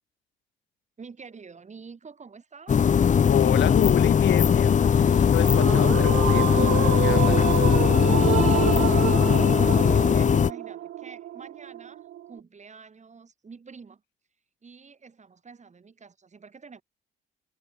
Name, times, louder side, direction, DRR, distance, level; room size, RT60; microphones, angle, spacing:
voice 1, 1.0-2.9 8.5-14.0 14.6-16.8, right 5 dB, 35° right, 7.6 m, -47 dB
sound 1, 2.7-10.5, left 7 dB, 40° left, 0.8 m, -20 dB
voice 2, 3.3-6.5 6.8-7.5, left 12 dB, 65° left, 1.0 m, -29 dB
sound 2, 5.4-12.4, right 13 dB, 75° right, 1.5 m, -28 dB
cardioid pair, 90°, 20 cm